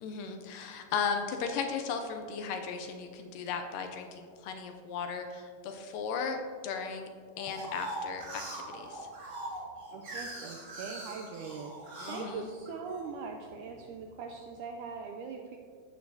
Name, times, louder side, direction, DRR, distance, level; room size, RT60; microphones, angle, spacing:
voice 1, 0.0-7.1 7.4-9.1 12.0-12.5, left 5 dB, 80° left, 5 dB, 2.1 m, -36 dB
sound 1, 7.4-13.1 13.6-14.3, right 1 dB, 35° right, 1.3 m, -42 dB
voice 2, 9.9-15.6, right 5 dB, 85° right, 2 dB, 1.8 m, -41 dB
14.5 x 6.6 x 2.7 m, 2.1 s
omnidirectional pair, 4.1 m